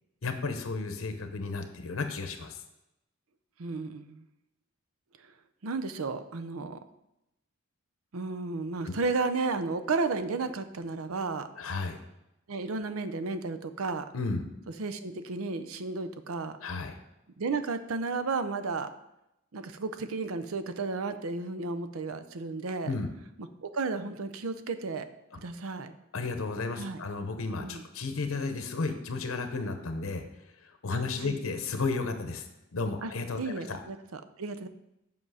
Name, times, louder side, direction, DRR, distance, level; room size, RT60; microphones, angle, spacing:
voice 1, 0.2-2.6 8.8-8.9 11.6-12.0 14.1-14.5 16.6-17.0 22.8-23.1 26.1-30.2 30.6-32.4 32.7-33.8, left 3 dB, 70° left, 7 dB, 0.8 m, -33 dB
voice 2, 3.6-4.2 5.6-6.8 8.1-11.5 12.5-14.0 14.8-16.6 17.4-18.9 19.5-22.9 23.6-25.1 25.4-25.9 26.8-27.0 27.6-27.8 30.9-31.4 33.0-34.7, right 3 dB, 85° right, 10 dB, 0.6 m, -33 dB
7.8 x 5.5 x 4.8 m, 0.87 s
head